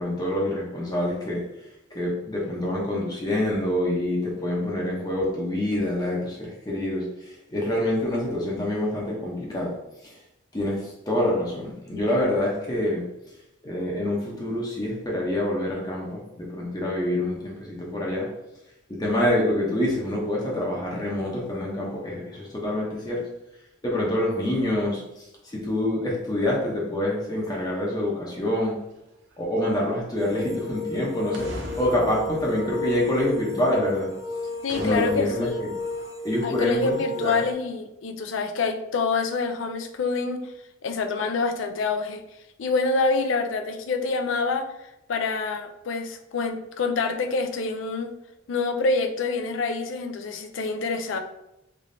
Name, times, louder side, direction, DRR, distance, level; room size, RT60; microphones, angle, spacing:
voice 1, 0.0-1.4 1.9-9.7 10.0-10.2 10.5-13.0 13.6-18.3 18.9-23.3 23.8-28.8 29.4-34.1 34.8-35.7 36.2-37.4, left 1 dB, 20° left, -3 dB, 0.7 m, -26 dB
sound 1, 29.3-29.4 31.3-33.5 34.7-36.0, equal, 65° right, 0.6 m, -39 dB
sound 2, 30.2-37.5, left 3 dB, 15° right, 0.3 m, -33 dB
voice 2, 34.6-35.7 36.4-40.4 40.8-42.2 42.6-48.1 48.5-51.2, left 4 dB, 80° left, 6 dB, 0.4 m, -26 dB
3.3 x 3.0 x 2.6 m, 0.87 s
head